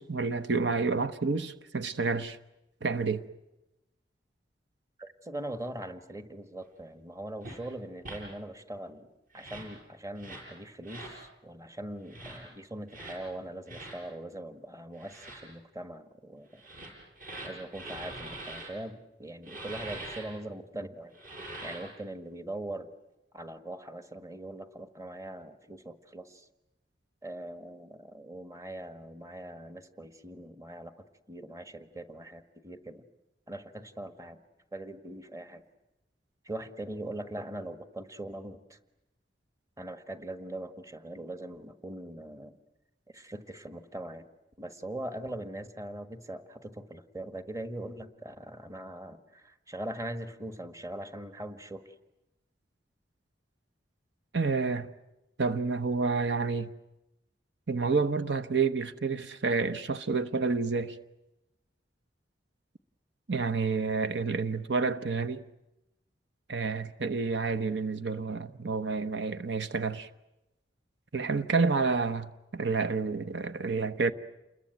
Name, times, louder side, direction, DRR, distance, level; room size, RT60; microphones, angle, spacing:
voice 1, 0.0-2.4 2.8-3.2 54.3-54.9 55.4-56.7 57.7-61.0 63.3-65.4 66.5-70.1 71.1-74.1, right 4 dB, 75° right, 1.0 m, -29 dB
voice 2, 5.0-9.1 9.3-16.6 17.4-21.2 21.6-22.9 23.3-26.4 27.2-30.9 31.3-33.0 33.5-34.4 34.7-35.6 36.4-38.8 39.8-42.6 43.1-44.2 44.6-51.9, right 1 dB, 20° right, 1.4 m, -41 dB
sound 1, 7.4-7.6 8.0-8.2 9.3-9.7 10.2-10.5 10.8-11.2 12.1-12.4 12.9-13.2 13.7-14.0 14.9-15.4 16.5-18.7 19.4-20.2 21.1-21.9, right 2 dB, 50° right, 7.1 m, -43 dB
29.0 x 22.0 x 9.3 m
head